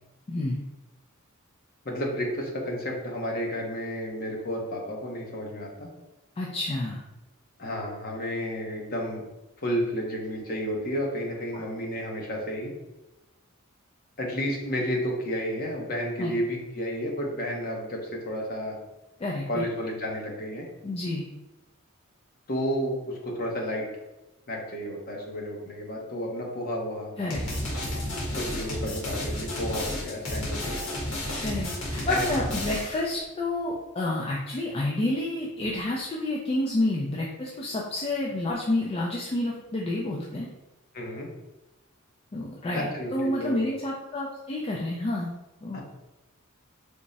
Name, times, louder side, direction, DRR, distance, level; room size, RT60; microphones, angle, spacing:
voice 1, 0.3-0.6 6.4-7.0 11.5-11.6 16.2-16.4 19.2-19.7 20.8-21.3 27.2-27.4 30.6-30.7 31.4-40.5 42.3-45.3 45.6-45.8, left 1 dB, 30° left, -3 dB, 0.3 m, -29 dB
voice 2, 1.8-5.9 7.6-9.2 9.6-12.7 14.2-18.8 19.5-20.6 22.5-23.9 24.5-27.1 28.3-31.0 32.1-32.3 40.9-41.3 42.7-43.6 45.7-45.8, equal, 45° left, -1 dB, 0.8 m, -31 dB
sound 1, 27.3-33.0, left 1 dB, 80° left, 1.3 m, -32 dB
3.5 x 2.0 x 3.9 m, 1.0 s
head